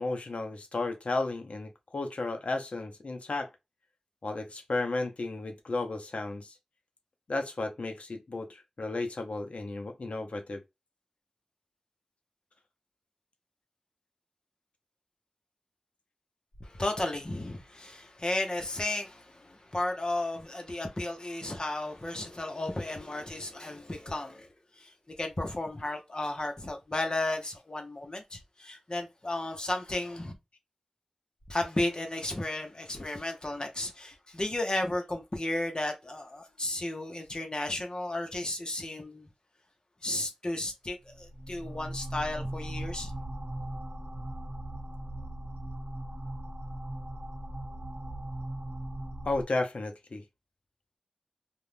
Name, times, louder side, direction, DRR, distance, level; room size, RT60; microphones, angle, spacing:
voice 1, 0.0-3.5 4.2-6.6 7.3-10.6 49.2-50.2, left 2 dB, 80° left, 0.7 m, -33 dB
voice 2, 16.6-24.5 24.8-30.3 31.5-39.3 40.0-43.1, left 2 dB, 40° left, 0.9 m, -34 dB
sound 1, 41.1-49.4, right 1 dB, 80° right, 0.7 m, -39 dB
2.6 x 2.4 x 3.3 m
wide cardioid pair, 50°, 2 cm